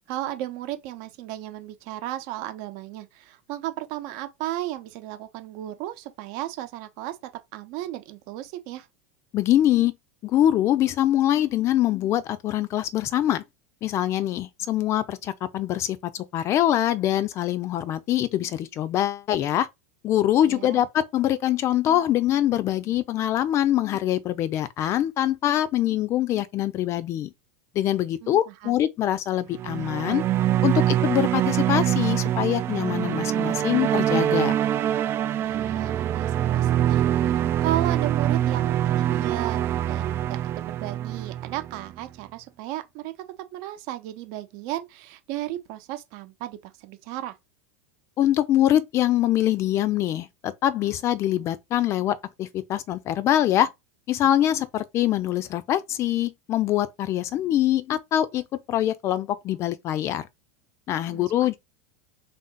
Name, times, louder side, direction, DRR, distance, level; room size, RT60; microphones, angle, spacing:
voice 1, 0.1-7.2 7.5-8.9 20.5-20.9 28.2-28.8 35.4-43.1 43.5-47.4 61.1-61.6, right 14 dB, 55° right, 0.8 m, -35 dB
voice 2, 9.3-9.9 10.2-13.4 13.8-19.7 20.0-27.3 27.7-30.2 30.6-34.5 48.2-53.7 54.1-60.3 60.9-61.6, left 12 dB, 40° left, 0.5 m, -24 dB
sound 1, 29.5-42.0, right 11 dB, 35° right, 0.3 m, -24 dB
3.6 x 2.6 x 3.8 m
figure-of-eight pair, 85°, 7 cm